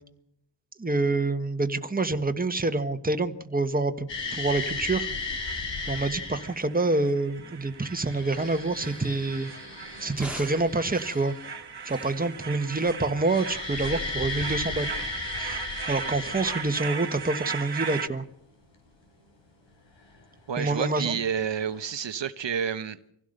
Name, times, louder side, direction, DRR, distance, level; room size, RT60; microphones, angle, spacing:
voice 1, 0.8-5.1 5.9-9.5 10.0-11.3 11.8-14.9 15.3-15.6 15.9-18.2 20.6-21.1, right 2 dB, 20° right, 8 dB, 1.4 m, -27 dB
sound 1, 4.1-6.5 7.7-11.6 13.2-17.2 20.1-20.2 21.4-21.8, left 4 dB, 85° left, 5.2 m, -35 dB
sound 2, 4.3-18.1, right 6 dB, 65° right, 1.4 m, -38 dB
sound 3, 8.3-15.8, right 1 dB, 5° right, 1.8 m, -48 dB
voice 2, 20.5-23.0, right 7 dB, 80° right, 10 dB, 1.0 m, -29 dB
25.0 x 16.5 x 6.6 m, 0.75 s
wide cardioid pair, 105°, 43 cm